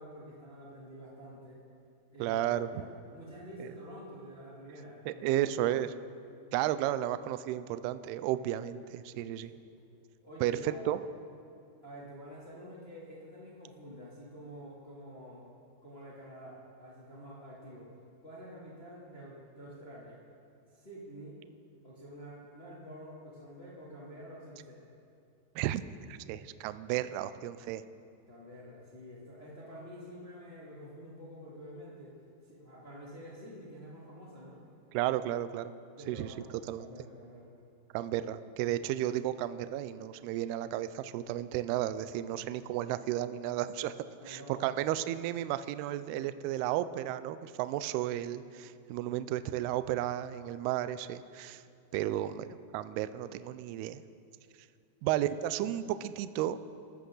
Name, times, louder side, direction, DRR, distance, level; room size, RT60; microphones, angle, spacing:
voice 1, 0.0-1.6 2.1-5.4 9.3-9.6 10.2-10.9 11.8-15.5 15.8-17.9 18.2-20.2 20.7-21.4 21.8-24.8 28.3-32.1 32.4-34.6 36.0-37.6 44.1-44.7 51.9-52.3, equal, 15° left, -7 dB, 2.3 m, -48 dB
voice 2, 2.2-2.7 5.1-5.9 6.5-9.5 10.4-11.0 25.6-25.8 26.1-27.8 34.9-35.7 36.1-36.3 36.7-36.9 37.9-43.9 44.3-51.6 51.9-54.0 55.0-56.6, right 13 dB, 80° right, 13 dB, 2.4 m, -33 dB
26.0 x 14.0 x 3.9 m, 2.4 s
omnidirectional pair, 5.0 m